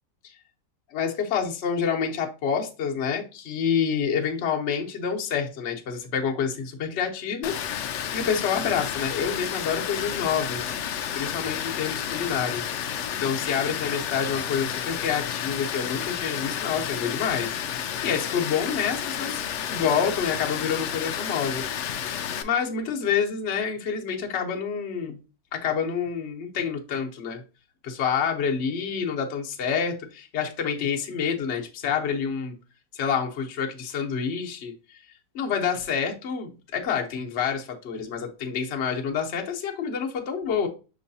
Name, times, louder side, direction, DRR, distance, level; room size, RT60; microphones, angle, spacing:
voice 1, 0.9-10.7 11.1-12.7 13.2-21.6 22.4-25.2 25.5-27.4 27.8-32.5 32.9-35.0 35.3-40.7, left 7 dB, 50° left, 0.9 m, -28 dB
Water, 7.4-22.4, left 9 dB, 85° left, 0.6 m, -31 dB
6.2 x 3.1 x 2.6 m
omnidirectional pair, 1.8 m